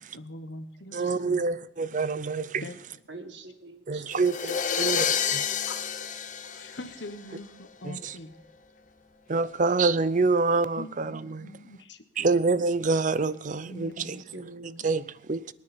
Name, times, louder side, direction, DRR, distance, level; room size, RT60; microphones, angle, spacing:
voice 1, 0.1-1.4 2.6-2.8 5.7-5.8 6.4-8.4 10.8-12.3 13.7-14.2 14.8-14.9, left 1 dB, 80° left, 1.3 m, -43 dB
voice 2, 0.9-2.6 3.9-5.1 5.3-5.5 7.8-8.1 9.3-11.5 12.2-14.2 14.6-15.5, right 3 dB, 45° right, 0.6 m, -26 dB
voice 3, 3.1-4.1 14.0-14.9, right 2 dB, 85° right, 1.8 m, -44 dB
sound 1, 4.1-7.4, left 7 dB, 45° left, 1.1 m, -29 dB
24.5 x 9.5 x 4.4 m
head